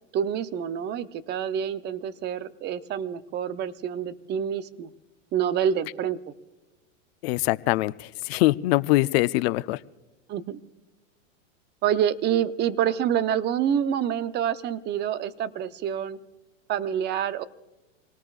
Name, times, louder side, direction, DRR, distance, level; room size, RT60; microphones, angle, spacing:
voice 1, 0.1-4.9 5.3-6.2 10.3-10.6 11.8-16.2 16.7-17.4, right 9 dB, 25° right, 13 dB, 0.7 m, -27 dB
voice 2, 7.2-9.8, left 18 dB, 50° left, 16 dB, 0.5 m, -23 dB
28.0 x 18.5 x 2.4 m, 1.1 s
hypercardioid pair, 125°, 40 cm